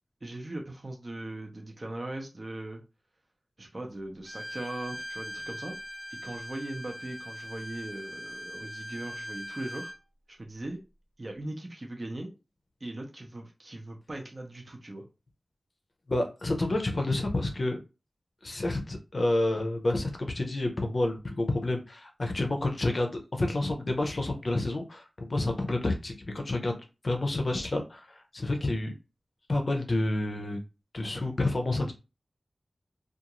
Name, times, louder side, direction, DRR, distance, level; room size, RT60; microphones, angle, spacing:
voice 1, 0.2-2.8 3.6-5.8 6.1-9.9 10.3-10.8 11.2-12.3 12.8-15.1, right 1 dB, 40° right, 2 dB, 0.6 m, -39 dB
Bowed string instrument, 4.2-10.0, equal, ahead, 0.5 m, -41 dB
voice 2, 16.1-17.8 18.4-26.7 27.0-28.9 29.5-30.6 30.9-31.9, left 2 dB, 50° left, 4 dB, 0.5 m, -29 dB
2.5 x 2.3 x 2.9 m, 0.29 s
wide cardioid pair, 80°, 0 cm